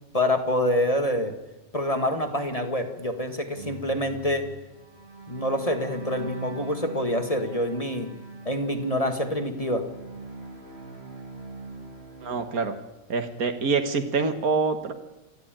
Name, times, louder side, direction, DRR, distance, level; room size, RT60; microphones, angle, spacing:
voice 1, 0.1-1.3 1.7-4.5 5.3-8.1 8.5-9.9, left 1 dB, 25° left, 6 dB, 1.6 m, -26 dB
sound 1, 3.6-12.8, right 3 dB, 45° right, 3.2 m, -42 dB
voice 2, 12.2-12.8 13.1-14.9, right 4 dB, 85° right, 8 dB, 1.8 m, -25 dB
28.5 x 13.0 x 8.9 m, 1.0 s
omnidirectional pair, 1.5 m